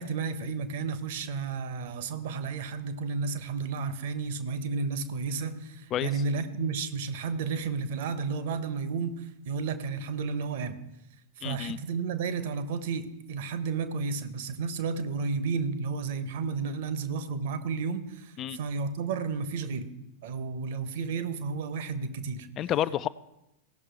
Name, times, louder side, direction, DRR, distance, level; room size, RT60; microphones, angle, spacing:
voice 1, 0.0-10.8 11.4-19.9 20.2-22.5, right 5 dB, 55° right, 10 dB, 1.1 m, -32 dB
voice 2, 11.4-11.8 18.4-18.6 22.6-23.1, left 11 dB, 35° left, 16 dB, 0.4 m, -29 dB
17.0 x 6.6 x 4.6 m, 0.90 s
figure-of-eight pair, 90°, 0 cm